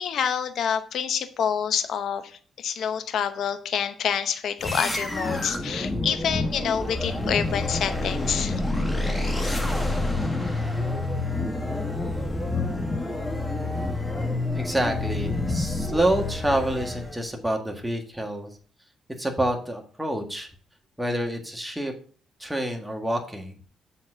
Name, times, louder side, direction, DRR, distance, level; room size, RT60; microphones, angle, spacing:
voice 1, 0.0-8.6, left 8 dB, 65° left, 10 dB, 0.8 m, -27 dB
sound 1, 4.6-17.2, left 2 dB, 15° left, 1.5 m, -28 dB
voice 2, 14.5-18.5 19.2-20.5 21.0-21.9 22.4-23.6, right 1 dB, 5° right, 3 dB, 1.7 m, -27 dB
7.3 x 4.2 x 6.1 m, 0.43 s
cardioid pair, 90°, 0 cm